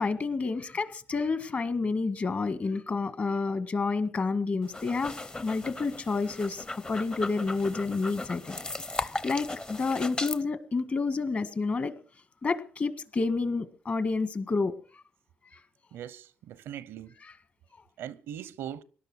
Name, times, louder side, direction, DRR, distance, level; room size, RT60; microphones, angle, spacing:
voice 1, 0.0-5.1 5.4-8.6 9.0-11.9 12.4-14.7 17.2-17.3, left 4 dB, 45° left, 1.8 m, -29 dB
sound 1, 4.6-10.4, left 2 dB, 25° left, 0.8 m, -37 dB
voice 2, 15.9-17.1 18.0-18.8, right 10 dB, 90° right, 0.7 m, -40 dB
18.0 x 11.5 x 6.3 m
cardioid pair, 75°, 4 cm